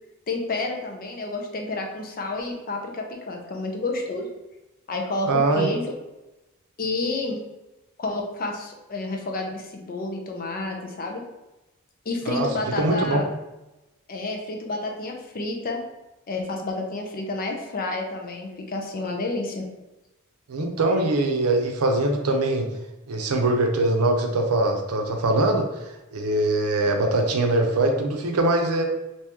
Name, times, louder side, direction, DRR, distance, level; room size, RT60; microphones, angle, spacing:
voice 1, 0.3-4.3 4.9-5.3 5.6-5.8 6.8-7.4 8.0-11.2 12.0-13.3 14.1-15.8 16.3-19.7, left 2 dB, 40° left, 2 dB, 0.6 m, -30 dB
voice 2, 5.3-5.7 12.3-12.5 12.8-13.2 20.5-22.7 23.1-28.8, right 2 dB, 85° right, 3 dB, 0.6 m, -22 dB
2.9 x 2.7 x 3.4 m, 1.0 s
head